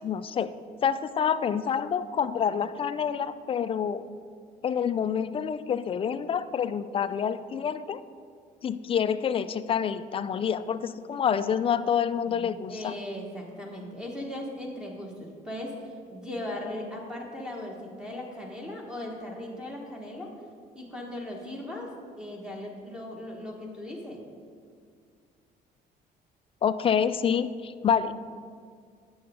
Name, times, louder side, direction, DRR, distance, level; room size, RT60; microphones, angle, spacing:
voice 1, 0.0-0.5 0.8-4.1 4.6-8.0 8.6-12.9 26.6-28.1, left 7 dB, 35° left, 13 dB, 0.4 m, -27 dB
voice 2, 12.0-20.3 20.7-21.9 22.2-24.2, left 1 dB, 5° right, -1 dB, 1.4 m, -38 dB
9.4 x 6.9 x 3.6 m, 2.1 s
cardioid pair, 110°, 17 cm